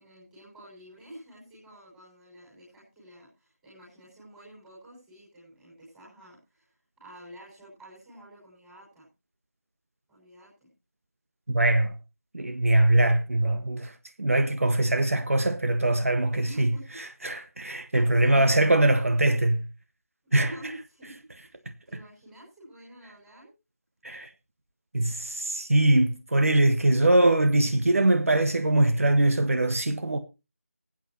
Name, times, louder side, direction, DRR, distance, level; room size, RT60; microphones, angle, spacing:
voice 1, 0.0-9.1 10.1-10.7 16.4-16.9 17.9-18.5 20.2-21.6 21.9-23.5, right 1 dB, 5° right, 5.8 m, -48 dB
voice 2, 11.5-11.9 12.3-16.7 17.0-19.7 20.3-20.5 24.0-24.3 24.9-30.2, right 1 dB, 65° right, 1.4 m, -22 dB
21.0 x 9.1 x 2.9 m
figure-of-eight pair, 165°, 8 cm